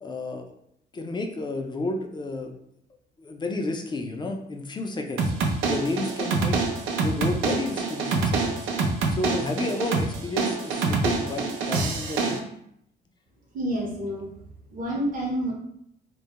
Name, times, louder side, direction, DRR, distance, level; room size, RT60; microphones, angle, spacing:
voice 1, 0.0-0.4 0.9-2.5 3.2-5.3 5.7-6.6 7.0-8.6 9.1-12.5, left 2 dB, 25° left, 3 dB, 0.3 m, -31 dB
sound 1, 5.2-12.4, right 4 dB, 80° right, 0.4 m, -26 dB
voice 2, 13.5-14.3 14.7-15.5, equal, 45° right, -2 dB, 0.7 m, -28 dB
2.2 x 2.0 x 2.8 m, 0.73 s
cardioid pair, 90°, 20 cm